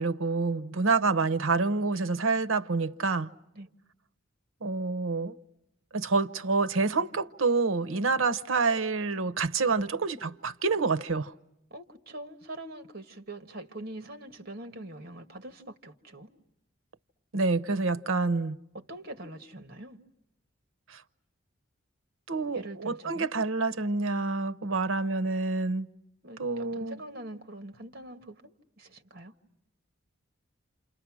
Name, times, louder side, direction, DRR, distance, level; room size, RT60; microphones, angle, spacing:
voice 1, 0.0-3.3 4.6-5.4 5.9-11.3 17.3-18.6 20.9-21.0 22.3-25.9 26.4-27.0, right 3 dB, 85° right, 0.9 m, -27 dB
voice 2, 11.7-16.3 18.7-20.0 22.5-23.3 26.2-29.3, right 1 dB, 50° right, 1.8 m, -43 dB
29.0 x 28.5 x 6.3 m
head